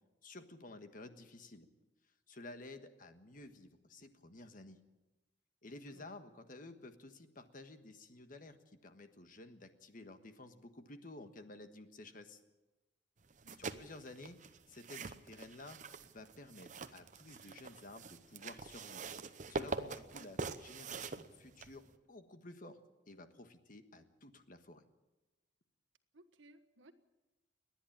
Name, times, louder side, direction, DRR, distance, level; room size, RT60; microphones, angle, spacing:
voice 1, 0.2-1.7 2.3-4.8 5.6-12.4 13.6-14.4 14.7-15.8 16.0-19.0 19.3-22.8 23.1-24.8, left 2 dB, 45° left, 8 dB, 1.4 m, -53 dB
sound 1, 13.3-21.9, right 4 dB, 40° right, 0.8 m, -44 dB
voice 2, 13.4-13.8 26.1-26.9, right 1 dB, 85° right, 7 dB, 1.4 m, -61 dB
29.5 x 10.5 x 8.8 m, 1.1 s
head